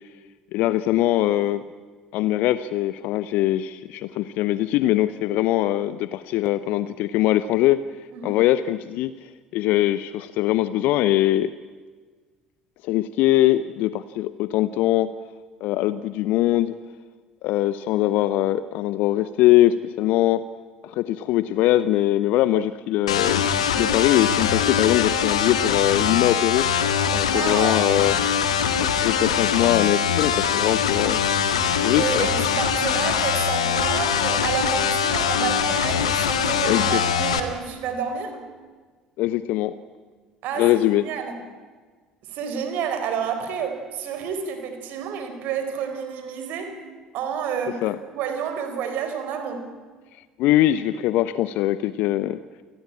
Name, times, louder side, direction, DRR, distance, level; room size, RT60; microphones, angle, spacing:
voice 1, 0.5-1.6 2.1-7.8 8.2-9.1 9.5-11.5 12.8-15.1 15.6-16.7 17.4-20.4 20.8-23.5 23.7-26.7 27.1-28.2 28.8-31.2 31.8-32.3 36.6-37.0 39.2-39.7 40.6-41.0 47.8-48.0 50.4-52.4, left 14 dB, 55° left, 15 dB, 0.7 m, -22 dB
sound 1, 23.1-37.4, left 7 dB, 75° left, 1.7 m, -22 dB
voice 2, 27.3-27.8 31.9-38.5 40.4-41.4 42.2-46.8 47.1-49.8, right 7 dB, 55° right, 7 dB, 4.3 m, -29 dB
28.5 x 19.5 x 8.8 m, 1.5 s
figure-of-eight pair, 55°, 3 cm